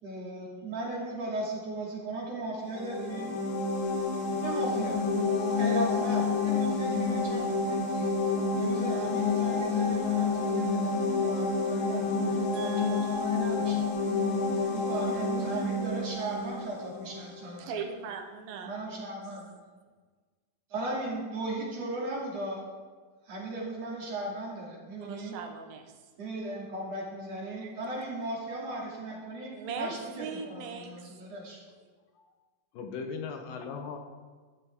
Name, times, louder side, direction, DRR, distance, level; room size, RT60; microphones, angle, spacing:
voice 1, 0.0-3.3 4.4-5.0 5.6-13.8 14.5-17.7 18.6-19.5 20.7-22.7 23.2-25.4 26.2-31.6, right 2 dB, 50° right, -3 dB, 3.4 m, -37 dB
sound 1, 2.6-17.3, left 4 dB, 60° left, 1.4 m, -29 dB
voice 2, 12.5-13.2 17.6-19.1 19.5-19.6 25.0-25.8 27.6-27.7 29.5-30.9, right 6 dB, 80° right, 4 dB, 2.8 m, -40 dB
voice 3, 32.7-34.0, left 5 dB, 75° left, 4 dB, 2.8 m, -38 dB
12.5 x 12.5 x 3.6 m, 1.4 s
omnidirectional pair, 4.1 m